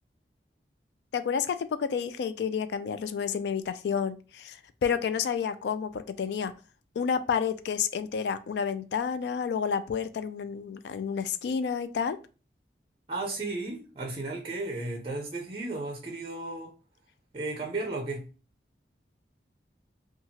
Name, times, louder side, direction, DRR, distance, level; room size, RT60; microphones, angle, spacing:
voice 1, 1.1-6.5 7.0-12.2, left 6 dB, 75° left, 0.3 m, -30 dB
voice 2, 13.1-16.7 17.3-18.2, right 2 dB, 30° right, 0.5 m, -34 dB
2.8 x 2.3 x 2.8 m
head